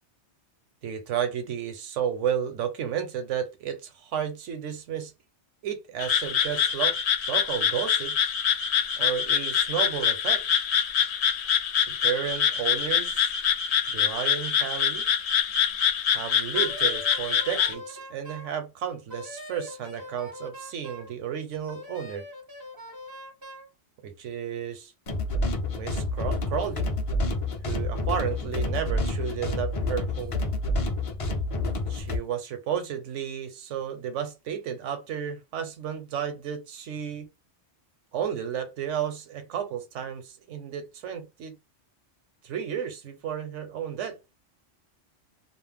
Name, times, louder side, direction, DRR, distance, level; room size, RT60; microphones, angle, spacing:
voice 1, 0.8-5.1 5.6-7.0 7.3-8.2 9.0-10.4 11.9-13.3 13.9-15.0 16.1-22.3 24.0-24.9 25.7-26.9 27.7-30.4 31.9-37.3 38.1-41.6 42.4-44.2, right 8 dB, 90° right, 1.0 m, -32 dB
Frog, 6.0-17.7, left 8 dB, 70° left, 0.8 m, -25 dB
Wind instrument woodwind instrument, 16.5-18.5 19.1-21.1 21.7-23.7, left 1 dB, 30° right, 0.4 m, -42 dB
sound 1, 25.1-32.2, left 2 dB, 45° left, 0.4 m, -28 dB
2.4 x 2.0 x 3.3 m
omnidirectional pair, 1.2 m